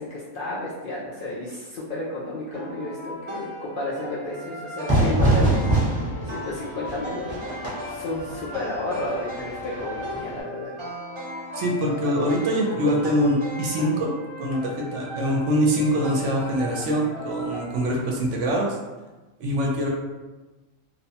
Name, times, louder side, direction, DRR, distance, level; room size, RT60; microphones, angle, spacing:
voice 1, 0.0-5.7 6.2-10.7, left 2 dB, 65° left, -7 dB, 0.5 m, -32 dB
sound 1, 2.5-17.8, left 1 dB, 45° right, 0.4 m, -37 dB
Fire / Fireworks, 4.9-10.4, right 2 dB, 25° right, 0.8 m, -25 dB
voice 2, 11.6-14.1 14.4-18.8 19.4-19.9, equal, 70° right, -1 dB, 0.9 m, -24 dB
2.8 x 2.1 x 2.7 m, 1.2 s
omnidirectional pair, 1.4 m